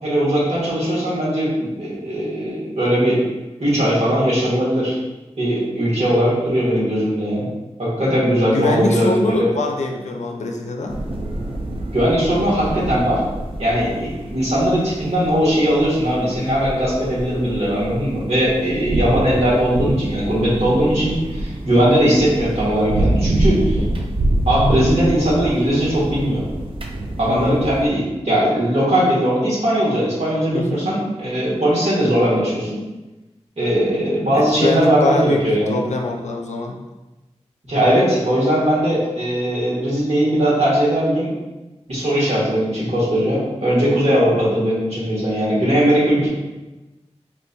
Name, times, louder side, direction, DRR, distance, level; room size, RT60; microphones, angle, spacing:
voice 1, 0.0-3.2 3.6-5.0 5.4-7.5 7.8-9.5 11.9-13.2 13.6-23.8 24.4-26.4 27.2-32.8 33.6-35.8 37.7-41.3 41.9-46.3, equal, 70° right, -7 dB, 1.4 m, -19 dB
voice 2, 8.5-11.0 27.3-27.7 30.5-30.9 34.3-36.8, left 2 dB, 90° left, 2 dB, 0.4 m, -23 dB
sound 1, 10.9-27.9, right 1 dB, 50° right, 0.4 m, -26 dB
4.2 x 2.6 x 2.2 m, 1.1 s
wide cardioid pair, 65°, 12 cm